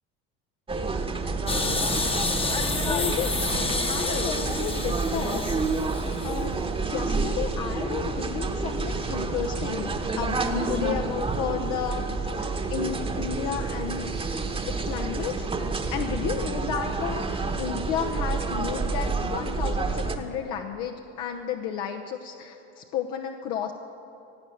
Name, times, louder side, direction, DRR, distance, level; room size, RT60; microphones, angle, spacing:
sound 1, 0.7-20.2, right 3 dB, 15° right, 1.1 m, -29 dB
sound 2, 1.5-6.6, left 3 dB, 15° left, 1.0 m, -29 dB
voice 1, 2.5-5.6 6.2-9.9 10.2-10.4 10.7-14.2 14.7-15.5 15.9-23.7, left 8 dB, 70° left, 3 dB, 1.0 m, -32 dB
17.0 x 8.7 x 7.8 m, 2.7 s
supercardioid pair, 105°, 34 cm